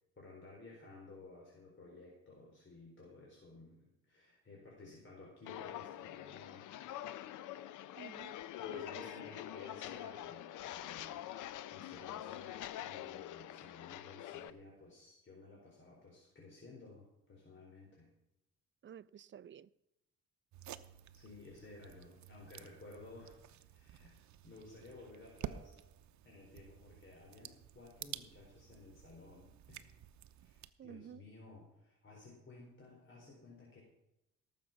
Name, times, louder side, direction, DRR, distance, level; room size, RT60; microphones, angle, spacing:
voice 1, 0.2-6.7 8.6-18.1 21.1-25.7 26.2-29.9 30.4-33.8, left 3 dB, 40° left, 4.2 m, -56 dB
Walk footsteps, 5.4-14.5, left 12 dB, 85° left, 0.7 m, -45 dB
voice 2, 8.0-8.3 8.7-9.0 18.8-19.7 30.8-31.2, right 9 dB, 40° right, 0.5 m, -52 dB
sound 1, 20.5-30.7, right 11 dB, 70° right, 0.8 m, -51 dB
17.5 x 7.4 x 6.0 m
cardioid pair, 90°, 30 cm